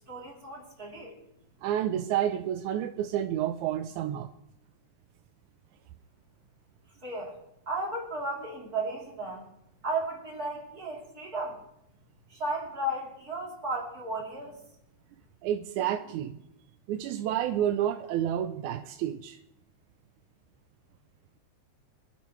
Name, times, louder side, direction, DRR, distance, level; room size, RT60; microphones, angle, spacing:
voice 1, 0.1-1.2 7.0-7.4 7.7-9.5 9.8-11.6 12.3-14.6, right 2 dB, 30° right, -3 dB, 3.8 m, -34 dB
voice 2, 1.6-4.3 15.4-16.4 16.9-19.4, right 11 dB, 85° right, 8 dB, 2.0 m, -30 dB
25.5 x 11.0 x 3.2 m, 0.81 s
omnidirectional pair, 3.4 m